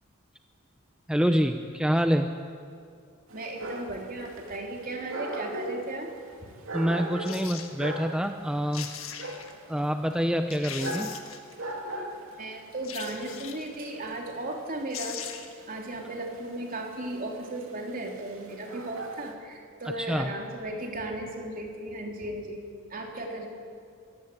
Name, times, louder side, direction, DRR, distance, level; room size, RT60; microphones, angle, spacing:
voice 1, 1.1-2.4 6.7-8.9 9.7-11.1 20.0-20.3, equal, 5° right, 6 dB, 0.7 m, -26 dB
voice 2, 3.3-6.1 12.4-15.2 15.7-22.6 22.9-23.5, right 1 dB, 45° right, 1 dB, 3.4 m, -36 dB
Dog, 3.3-19.3, right 1 dB, 75° right, 2.5 m, -40 dB
sound 1, 7.2-7.7 8.4-8.5 8.7-9.5 10.1-10.2 10.5-11.5 12.8-13.8 14.6-14.7 14.9-15.6 16.0-16.1, left 9 dB, 75° left, 1.9 m, -40 dB
23.5 x 17.0 x 8.4 m, 2.3 s
head